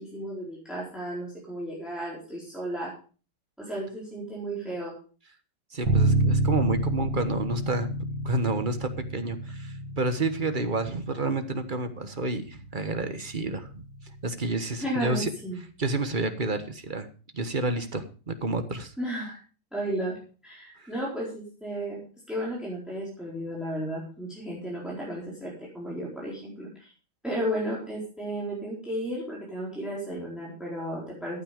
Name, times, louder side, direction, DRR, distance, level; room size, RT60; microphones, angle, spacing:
voice 1, 0.0-2.9 3.6-4.9 14.8-15.6 19.0-19.4 19.7-20.2 20.4-22.0 22.3-26.9 27.2-31.4, right 1 dB, ahead, -5 dB, 4.2 m, -33 dB
voice 2, 5.7-7.9 8.2-13.7 14.2-15.3 15.8-17.1 17.3-18.9, right 3 dB, 30° right, 9 dB, 1.0 m, -29 dB
Bass guitar, 5.8-15.6, right 1 dB, 80° right, 3.2 m, -31 dB
14.0 x 9.2 x 5.1 m, 0.37 s
omnidirectional pair, 2.3 m